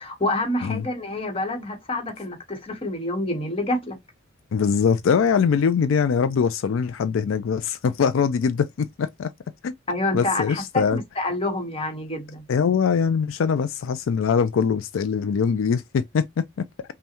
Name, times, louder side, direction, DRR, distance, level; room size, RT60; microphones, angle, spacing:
voice 1, 0.0-4.0 9.9-12.4, left 1 dB, 30° left, 1.2 m, -27 dB
voice 2, 4.5-9.3 9.6-9.7 10.1-11.0 12.5-16.7, left 6 dB, 75° left, 0.4 m, -22 dB
5.4 x 2.2 x 2.9 m
head